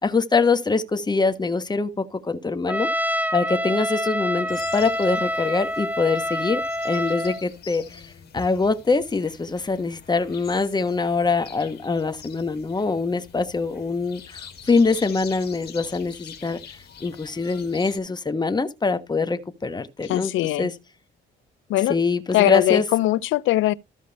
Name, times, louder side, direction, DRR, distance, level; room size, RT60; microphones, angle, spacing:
voice 1, 0.0-2.9 3.3-8.0 8.3-16.6 17.0-20.3 20.6-20.7 21.9-22.8, left 4 dB, 20° left, 1.3 m, -24 dB
Trumpet, 2.7-7.4, equal, 10° right, 0.8 m, -27 dB
sound 1, 4.5-18.0, left 7 dB, 55° left, 2.8 m, -44 dB
voice 2, 20.0-20.7 21.7-22.0 22.3-23.7, left 15 dB, 85° left, 0.5 m, -20 dB
14.0 x 5.1 x 4.1 m
cardioid pair, 90°, 20 cm